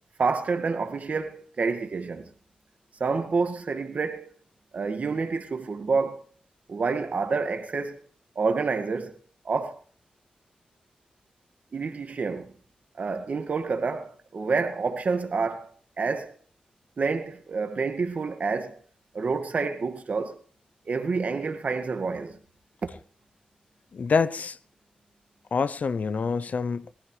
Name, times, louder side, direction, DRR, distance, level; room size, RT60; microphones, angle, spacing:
voice 1, 0.2-2.3 3.0-4.3 4.7-6.2 6.7-8.0 8.4-9.2 9.5-9.8 11.7-12.5 13.0-15.7 16.0-16.4 17.0-18.8 19.1-20.4 20.9-22.4 22.8-22.9, right 4 dB, 65° right, 1.9 m, -28 dB
voice 2, 23.9-24.6 25.5-26.9, left 5 dB, 65° left, 0.7 m, -26 dB
22.0 x 15.0 x 3.3 m
cardioid pair, 50°, 3 cm